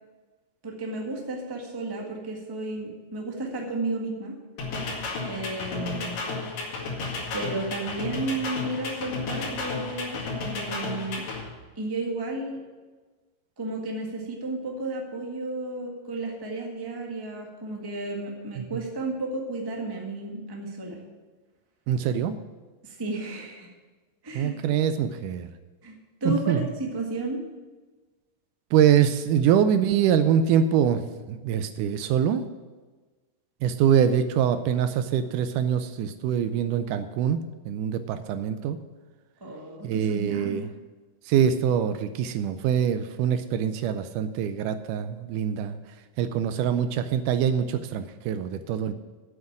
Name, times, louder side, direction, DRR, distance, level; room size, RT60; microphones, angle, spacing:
voice 1, 0.6-4.4 5.2-6.1 7.3-11.2 11.7-12.6 13.6-21.0 22.8-23.7 24.2-24.5 25.8-25.9 26.2-27.5 39.4-40.6, right 2 dB, 25° right, 0 dB, 0.4 m, -33 dB
sound 1, 4.6-11.4, left 3 dB, 75° left, 3.7 m, -33 dB
voice 2, 21.9-22.4 24.4-25.5 26.3-26.7 28.7-31.0 31.3-32.4 33.6-38.8 39.8-40.7 41.3-45.8 46.2-48.9, right 8 dB, 80° right, 10 dB, 2.0 m, -24 dB
8.2 x 7.9 x 8.6 m, 1.3 s
omnidirectional pair, 3.9 m